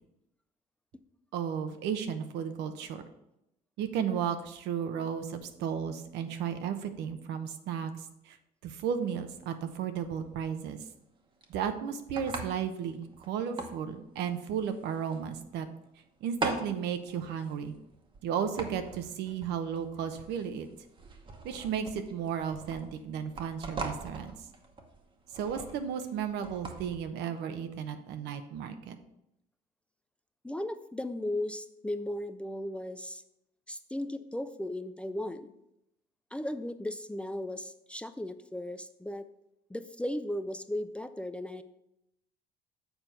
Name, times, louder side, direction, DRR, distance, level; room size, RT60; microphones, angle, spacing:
voice 1, 1.3-3.0 3.8-7.9 8.3-8.4 8.6-10.8 11.5-15.7 16.2-17.7 18.2-20.7 21.4-24.3 25.3-29.0, right 8 dB, 85° right, 8 dB, 0.8 m, -34 dB
sound 1, 9.3-27.0, right 3 dB, 30° right, 1.0 m, -43 dB
voice 2, 30.4-33.2 33.7-35.5 36.3-39.3 39.7-41.6, left 1 dB, 5° left, 10 dB, 0.3 m, -36 dB
6.9 x 4.4 x 5.3 m, 0.83 s
cardioid pair, 110°, 17 cm